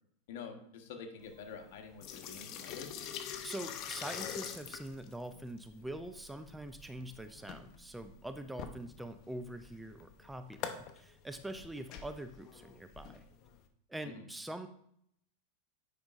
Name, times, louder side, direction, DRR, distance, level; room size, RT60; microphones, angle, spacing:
voice 1, 0.3-2.9 14.0-14.2, left 5 dB, 65° left, 4 dB, 1.1 m, -47 dB
sound 1, 1.2-13.6, left 8 dB, 45° left, 0.6 m, -45 dB
voice 2, 3.4-13.2 13.9-14.7, right 1 dB, 5° right, 9 dB, 0.3 m, -44 dB
8.7 x 5.1 x 2.5 m, 0.70 s
supercardioid pair, 130°, 0 cm